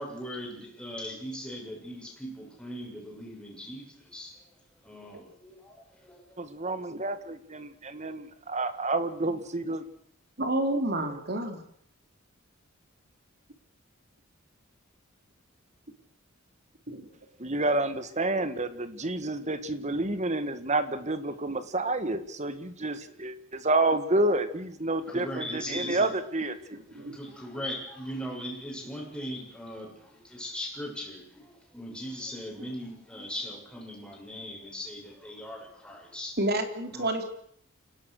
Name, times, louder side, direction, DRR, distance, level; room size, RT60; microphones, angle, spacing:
voice 1, 0.0-4.5 4.8-6.4 25.1-26.2 26.9-36.4 36.9-37.1, equal, 5° left, -1 dB, 6.7 m, -39 dB
voice 2, 6.4-9.8 17.4-26.8, right 2 dB, 35° right, 11 dB, 1.8 m, -29 dB
voice 3, 10.4-11.6 16.9-17.1 25.7-25.9 26.9-27.2 36.4-37.2, right 1 dB, 50° right, 6 dB, 3.4 m, -29 dB
28.5 x 17.5 x 6.7 m, 0.66 s
head